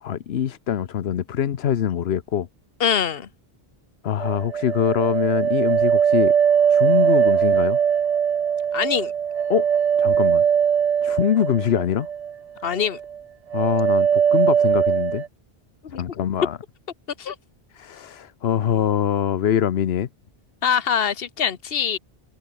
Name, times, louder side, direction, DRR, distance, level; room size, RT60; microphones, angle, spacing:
voice 1, 0.0-2.5 4.0-6.3 6.7-7.8 9.5-9.7 10.0-10.4 11.0-12.1 13.5-15.2 15.9-16.6 17.7-20.1, left 9 dB, 90° left, 1.1 m, -23 dB
voice 2, 2.8-3.3 8.7-9.1 12.6-13.0 15.9-16.0 17.2-17.3 20.6-22.0, left 7 dB, 70° left, 1.3 m, -23 dB
sound 1, 4.2-12.3 12.6-13.2 13.5-15.3, right 8 dB, 45° right, 0.6 m, -20 dB
omnidirectional pair, 1.0 m